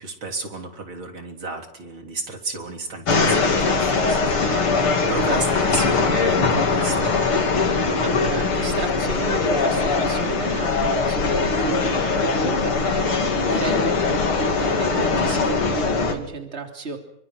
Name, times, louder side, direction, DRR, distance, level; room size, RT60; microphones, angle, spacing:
voice 1, 0.0-7.1, right 3 dB, 70° right, 3 dB, 4.3 m, -33 dB
sound 1, 3.1-16.1, left 4 dB, 85° left, 3.7 m, -21 dB
voice 2, 8.0-17.0, right 3 dB, 30° right, 3 dB, 3.3 m, -32 dB
29.0 x 25.5 x 6.2 m, 0.77 s
omnidirectional pair, 2.3 m